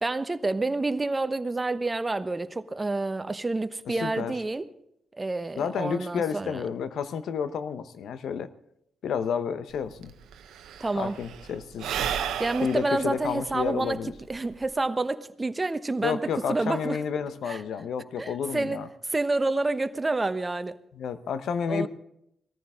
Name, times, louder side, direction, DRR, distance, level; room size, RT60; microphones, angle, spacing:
voice 1, 0.0-4.6 5.1-6.6 10.8-11.1 12.4-14.0 14.3-16.2 16.5-17.0 17.5-17.6 18.2-18.8 19.1-20.8 21.7-21.9, right 2 dB, 25° right, 1.0 m, -28 dB
voice 2, 3.9-4.3 5.6-8.5 9.0-10.1 11.0-11.9 12.6-14.1 16.0-18.9 20.9-21.9, left 7 dB, 70° left, 0.8 m, -30 dB
Sigh / Breathing, 9.7-9.8 10.0-14.8, right 8 dB, 75° right, 0.9 m, -34 dB
19.0 x 14.0 x 3.6 m
hypercardioid pair, 45°, 0 cm